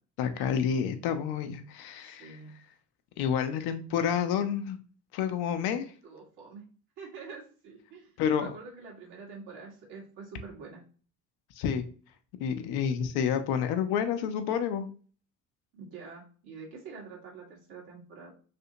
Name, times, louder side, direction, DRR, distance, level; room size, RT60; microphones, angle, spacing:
voice 1, 0.2-2.4 3.2-4.8 5.1-5.9 8.2-8.6 11.6-11.8 12.4-14.9, left 8 dB, 60° left, 8 dB, 0.6 m, -29 dB
voice 2, 2.0-2.5 6.0-6.6 7.0-10.8 15.7-18.3, right 4 dB, 65° right, -2 dB, 1.6 m, -46 dB
3.3 x 2.8 x 2.7 m, 0.40 s
hypercardioid pair, 60°, 42 cm